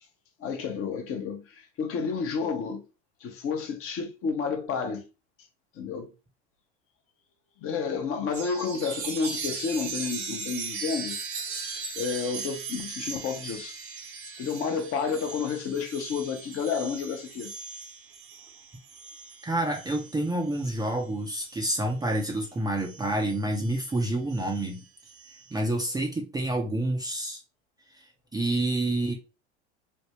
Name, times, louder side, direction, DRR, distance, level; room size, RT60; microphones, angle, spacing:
voice 1, 0.4-2.8 3.2-5.1 5.8-6.1 7.6-11.2 11.9-13.8 14.4-17.5, left 5 dB, 40° left, 0.8 m, -30 dB
Chime, 8.3-22.3 22.8-25.6, right 5 dB, 65° right, 1.0 m, -39 dB
voice 2, 19.4-24.8 25.5-27.4 27.9-29.1, right 1 dB, 10° right, 0.5 m, -28 dB
3.4 x 2.1 x 2.9 m
hypercardioid pair, 90°, 34 cm